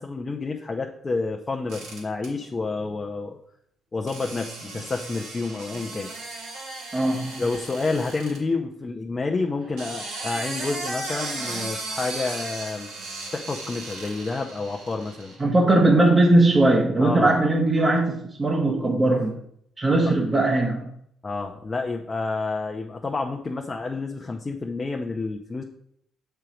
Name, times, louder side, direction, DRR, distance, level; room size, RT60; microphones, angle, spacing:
voice 1, 0.0-3.4 3.9-6.1 7.4-12.9 13.3-15.3 17.0-17.4 19.1-19.3 21.2-25.6, left 3 dB, 30° left, 0.7 m, -29 dB
sound 1, 1.7-2.3 4.1-8.4 9.6-15.4, right 2 dB, 90° right, 2.1 m, -36 dB
voice 2, 6.9-7.4 15.4-19.4 19.8-20.9, right 2 dB, 25° right, 1.0 m, -19 dB
6.7 x 4.5 x 5.0 m
cardioid pair, 90°, 0 cm